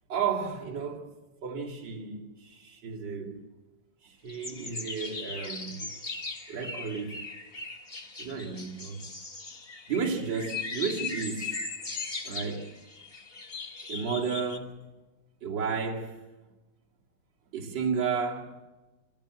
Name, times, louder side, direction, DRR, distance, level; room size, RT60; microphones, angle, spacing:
voice 1, 0.1-1.1 1.4-3.4 4.0-5.9 6.5-7.2 8.2-9.1 9.9-11.7 12.2-12.7 13.9-14.9 15.4-16.2 17.5-18.6, right 6 dB, 60° right, 3.1 m, -33 dB
sound 1, 4.3-14.6, left 4 dB, 30° left, 1.7 m, -39 dB
26.0 x 16.0 x 7.6 m
omnidirectional pair, 2.3 m